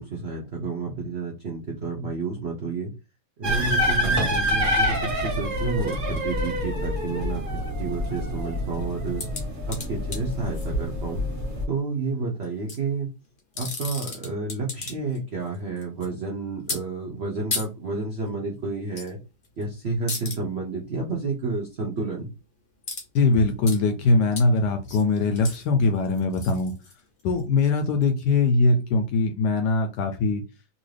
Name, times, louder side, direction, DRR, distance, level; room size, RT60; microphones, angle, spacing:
voice 1, 0.0-2.9 3.4-7.4 7.8-9.3 9.7-11.2 11.7-13.1 13.6-19.2 19.6-22.3, right 3 dB, 85° right, -1 dB, 0.5 m, -30 dB
sound 1, 3.4-11.6, equal, 35° right, 0.9 m, -27 dB
sound 2, 9.2-10.7 12.4-12.8 13.4-15.2 15.5-16.1 16.7-16.8 17.5-17.7 18.9-19.1 19.4-19.6 20.1-20.4 22.8-23.1 23.3-23.8 24.4-24.5 24.8-27.4 28.0-28.1, left 3 dB, 55° left, 0.5 m, -34 dB
voice 2, 23.1-26.7 27.2-30.4, left 3 dB, 75° left, 6 dB, 1.0 m, -21 dB
3.0 x 2.6 x 3.2 m, 0.28 s
omnidirectional pair, 2.2 m